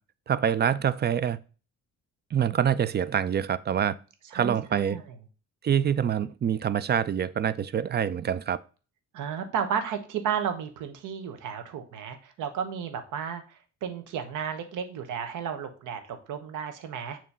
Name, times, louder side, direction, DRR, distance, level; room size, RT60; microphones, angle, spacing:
voice 1, 0.3-1.4 2.3-4.0 4.3-5.0 5.6-8.6, right 8 dB, 35° right, 17 dB, 0.4 m, -26 dB
voice 2, 4.3-5.1 9.1-13.4 13.8-17.2, right 7 dB, 85° right, 8 dB, 1.1 m, -33 dB
7.2 x 3.0 x 5.4 m, 0.36 s
cardioid pair, 90°, 30 cm